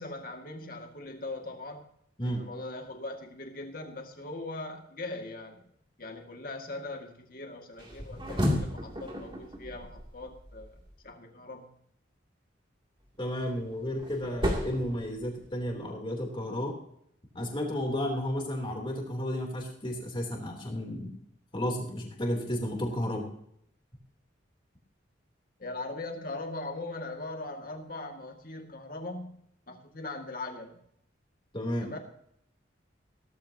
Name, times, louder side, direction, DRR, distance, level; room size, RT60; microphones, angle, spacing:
voice 1, 0.0-1.9 2.2-5.6 6.0-11.7 25.6-29.4 29.7-30.8 31.8-32.0, left 2 dB, 50° left, 3 dB, 2.1 m, -40 dB
sound 1, 7.8-10.9 13.1-15.7, equal, 25° right, 2.7 m, -34 dB
voice 2, 13.2-16.8 17.3-21.2 21.5-23.3 31.5-31.9, equal, 25° left, 0 dB, 3.3 m, -32 dB
17.0 x 14.0 x 2.9 m, 0.69 s
head